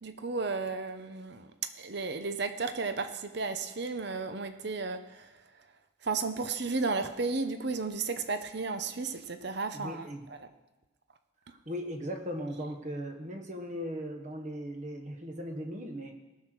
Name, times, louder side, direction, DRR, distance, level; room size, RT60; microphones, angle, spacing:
voice 1, 0.0-5.4 6.0-10.4, right 4 dB, 55° right, 9 dB, 0.8 m, -34 dB
voice 2, 9.7-10.3 11.5-16.1, equal, 35° right, 4 dB, 1.2 m, -38 dB
18.0 x 6.6 x 6.1 m, 1.1 s
head